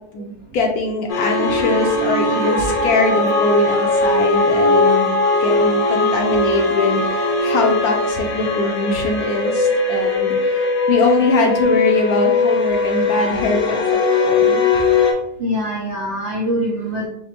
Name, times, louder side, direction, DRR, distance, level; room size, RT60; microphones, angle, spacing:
voice 1, 0.1-5.1 5.4-14.7, left 3 dB, 70° left, 2 dB, 1.0 m, -22 dB
sound 1, 1.1-15.1, left 3 dB, 90° left, 1.6 m, -19 dB
voice 2, 5.4-6.2 6.8-6.9 7.3-7.4 8.4-9.0 15.4-17.1, equal, 65° right, -3 dB, 0.7 m, -27 dB
4.9 x 2.1 x 3.0 m, 0.76 s
omnidirectional pair, 1.9 m